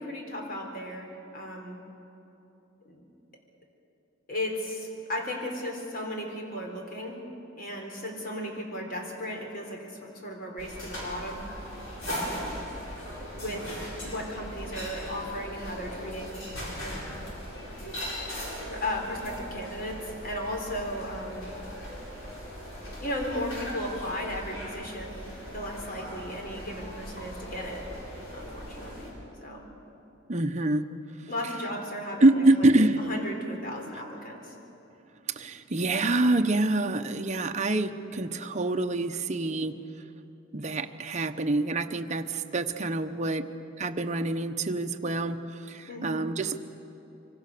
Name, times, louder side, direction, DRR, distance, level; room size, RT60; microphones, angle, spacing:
voice 1, 0.0-1.8 2.8-3.0 4.3-7.2 7.6-11.4 12.1-12.6 13.3-16.4 16.7-17.1 18.7-21.5 23.0-25.2 25.5-27.9 28.3-29.1 29.4-29.7 31.3-34.6 45.9-46.2, left 1 dB, 50° left, 2 dB, 4.1 m, -35 dB
sound 1, 10.6-29.1, equal, 75° left, 7.4 m, -39 dB
voice 2, 30.3-30.8 32.2-33.0 35.3-39.8 40.5-43.5 43.8-46.6, right 2 dB, 35° right, 6 dB, 1.0 m, -26 dB
25.5 x 24.5 x 6.9 m, 3.0 s
head